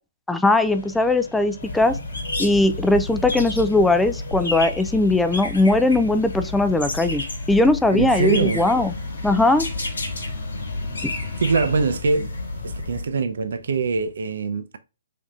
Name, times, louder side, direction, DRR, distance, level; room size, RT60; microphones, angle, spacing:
voice 1, 0.3-2.0 2.4-7.2 7.5-8.9 9.2-9.7 11.0-11.1, left 2 dB, 5° left, 0.3 m, -19 dB
sound 1, 0.6-14.1, left 3 dB, 65° left, 1.4 m, -40 dB
sound 2, 1.6-13.1, left 2 dB, 85° left, 1.7 m, -31 dB
voice 2, 7.9-8.6 11.4-12.3 12.6-14.8, right 4 dB, 65° right, 0.5 m, -23 dB
4.0 x 3.4 x 2.4 m
hypercardioid pair, 140°, 0 cm